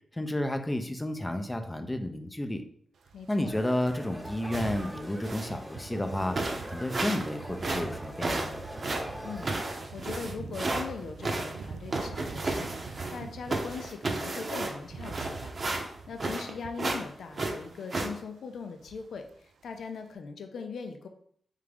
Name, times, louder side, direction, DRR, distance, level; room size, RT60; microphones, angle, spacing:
voice 1, 0.1-2.6 3.3-8.6, left 1 dB, 15° left, 6 dB, 0.6 m, -31 dB
sound 1, 3.0-14.0 14.3-17.7 18.0-18.2 18.6-19.4 19.6-19.8, right 4 dB, 85° right, 0.3 m, -44 dB
voice 2, 3.1-3.6 9.2-21.1, left 5 dB, 80° left, 5 dB, 0.5 m, -41 dB
sound 2, 3.5-9.9, equal, 15° right, 0.9 m, -43 dB
sound 3, 4.5-4.9 5.2-5.6 6.0-6.1 6.3-7.3 7.6-10.8 11.2-13.2 13.5-16.5 16.8-17.0 17.3-18.1, right 2 dB, 50° right, 0.8 m, -33 dB
3.6 x 3.4 x 3.5 m, 0.64 s
cardioid pair, 60°, 0 cm